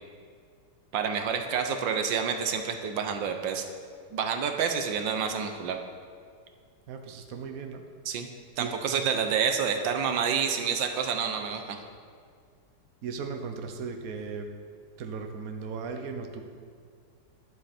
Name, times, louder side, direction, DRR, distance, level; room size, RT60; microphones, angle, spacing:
voice 1, 0.9-3.6 4.1-5.8 8.1-8.3 8.6-11.8, right 6 dB, 85° right, 6 dB, 1.6 m, -28 dB
voice 2, 6.9-7.8 8.6-9.1 13.0-14.5 15.0-16.4, right 5 dB, 55° right, 5 dB, 1.3 m, -37 dB
13.0 x 11.0 x 4.4 m, 2.1 s
omnidirectional pair, 2.0 m